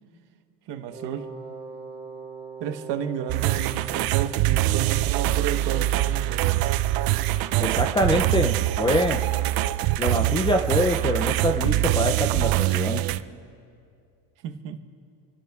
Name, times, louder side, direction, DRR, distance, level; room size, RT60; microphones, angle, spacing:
voice 1, 0.7-1.3 2.6-6.4 7.5-7.8 14.4-14.8, right 8 dB, 70° right, 7 dB, 1.2 m, -32 dB
Wind instrument woodwind instrument, 0.9-9.0, right 5 dB, 10° right, 3.3 m, -43 dB
sound 1, 3.3-13.2, right 15 dB, 55° right, 0.5 m, -24 dB
voice 2, 7.6-9.2 10.0-13.0, left 1 dB, 15° left, 4 dB, 0.3 m, -25 dB
27.5 x 16.5 x 2.3 m, 2.3 s
cardioid pair, 160°, 43 cm